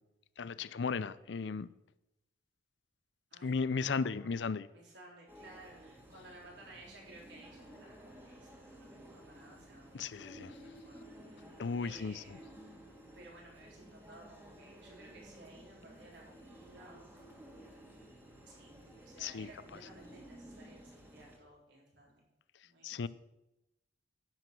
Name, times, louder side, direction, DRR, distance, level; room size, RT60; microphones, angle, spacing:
voice 1, 0.4-1.7 3.4-4.7 9.9-10.6 11.6-12.4 19.2-19.5 22.8-23.1, left 5 dB, 75° left, 0.5 m, -35 dB
voice 2, 3.3-4.5 4.7-11.1 11.4-11.5 11.8-12.5 13.1-17.0 18.5-22.2 22.6-23.1, right 1 dB, 75° right, 3.9 m, -57 dB
sound 1, 5.3-21.4, right 1 dB, 10° right, 1.7 m, -54 dB
10.5 x 7.9 x 6.0 m
head